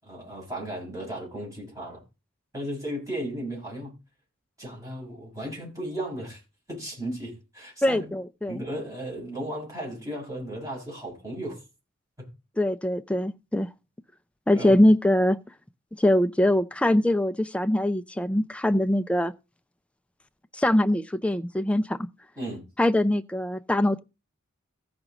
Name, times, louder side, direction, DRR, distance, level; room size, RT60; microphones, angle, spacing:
voice 1, 0.0-2.0 2.5-3.9 4.6-6.4 6.7-8.1 8.5-11.6 12.2-12.3 14.5-14.8 22.4-22.6, right 1 dB, 15° right, 6.2 m, -35 dB
voice 2, 7.8-8.6 12.6-13.7 14.5-15.4 16.0-19.3 20.5-22.0 22.8-24.0, left 1 dB, 5° left, 0.4 m, -22 dB
15.0 x 6.0 x 3.9 m
head